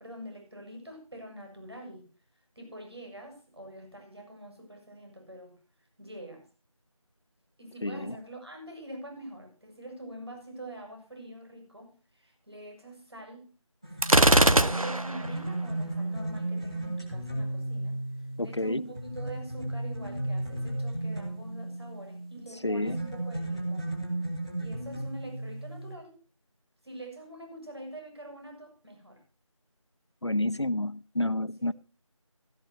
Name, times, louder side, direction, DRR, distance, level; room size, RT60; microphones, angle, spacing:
voice 1, 0.0-2.1 2.6-5.6 6.0-6.5 7.6-13.5 14.2-18.0 18.4-24.1 24.6-26.2 26.8-29.2 31.6-31.7, right 1 dB, 50° right, 7.2 m, -45 dB
voice 2, 7.8-8.2 18.4-18.8 22.6-23.0 30.2-31.7, left 1 dB, 55° left, 0.7 m, -29 dB
sound 1, 13.8-22.4 22.9-25.9, right 1 dB, 10° right, 1.9 m, -34 dB
Gunshot gunfire, 14.0-15.3, right 1 dB, 85° right, 1.4 m, -21 dB
16.5 x 15.0 x 2.9 m
figure-of-eight pair, 175°, 18 cm